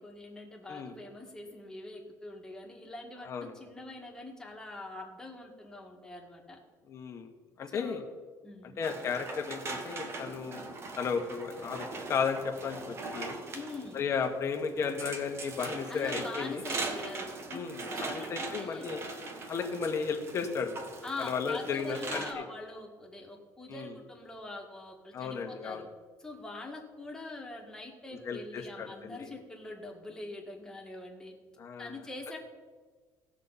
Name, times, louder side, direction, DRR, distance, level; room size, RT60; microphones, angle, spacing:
voice 1, 0.0-6.6 7.7-8.1 8.4-8.8 13.5-14.0 15.9-17.6 17.9-18.9 21.0-25.9 26.2-31.3 31.8-32.4, left 2 dB, 10° left, 0 dB, 2.0 m, -44 dB
voice 2, 6.9-7.3 7.6-8.0 8.6-10.7 11.0-13.4 13.9-16.6 17.5-19.1 19.5-20.7 21.2-22.4 23.7-23.9 25.1-25.8 28.2-29.3 31.6-32.0, left 5 dB, 40° left, 4 dB, 1.4 m, -34 dB
sound 1, 8.8-22.3, right 3 dB, 35° right, 1.4 m, -41 dB
17.5 x 6.4 x 4.2 m, 1.4 s
cardioid pair, 125°, 7 cm